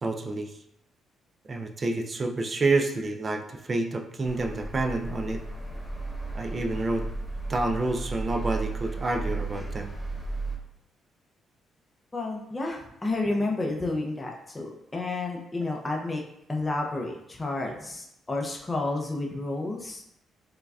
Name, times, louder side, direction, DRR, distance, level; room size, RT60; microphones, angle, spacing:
voice 1, 0.0-0.5 1.5-5.4 6.3-7.1 7.5-9.9, right 2 dB, 35° right, 4 dB, 0.4 m, -28 dB
sound 1, 4.2-10.6, right 2 dB, 5° left, 1.1 m, -34 dB
voice 2, 12.1-16.2 16.5-20.0, left 2 dB, 20° left, 0 dB, 0.5 m, -31 dB
4.6 x 2.2 x 2.3 m, 0.78 s
cardioid pair, 90°, 0 cm